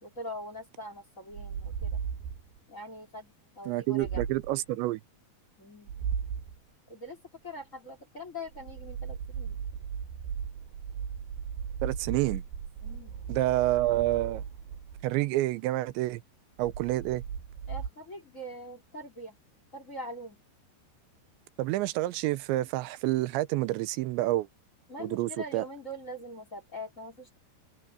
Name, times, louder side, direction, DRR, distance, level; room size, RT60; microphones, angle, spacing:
voice 1, 0.0-2.0 2.7-4.2 5.6-5.9 6.9-9.6 12.8-13.2 17.7-19.4 19.7-20.4 24.9-27.4, left 1 dB, 20° left, 3.1 m, -43 dB
sound 1, 1.3-2.6 4.0-4.6 5.9-6.6 8.5-15.2 16.6-17.9, right 7 dB, 70° right, 5.0 m, -37 dB
voice 2, 3.7-5.0 11.8-12.4 13.3-14.4 15.0-16.2 16.6-17.2 21.6-24.5 25.0-25.6, right 16 dB, 85° right, 3.0 m, -28 dB
omnidirectional pair, 5.2 m